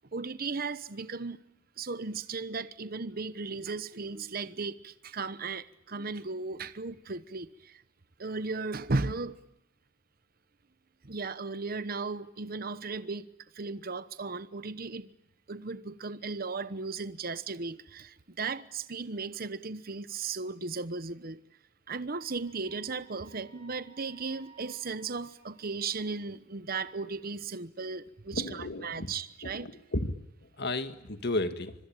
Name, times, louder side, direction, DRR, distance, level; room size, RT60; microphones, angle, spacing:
voice 1, 0.1-1.4 1.8-7.8 8.2-9.4 11.0-15.1 15.5-21.4 21.9-29.7, right 4 dB, 50° right, 1.0 m, -36 dB
Wind instrument woodwind instrument, 22.2-26.0, right 5 dB, 30° right, 6.2 m, -59 dB
voice 2, 28.3-29.1 29.4-31.7, left 2 dB, 55° left, 2.0 m, -34 dB
25.5 x 23.0 x 9.0 m
head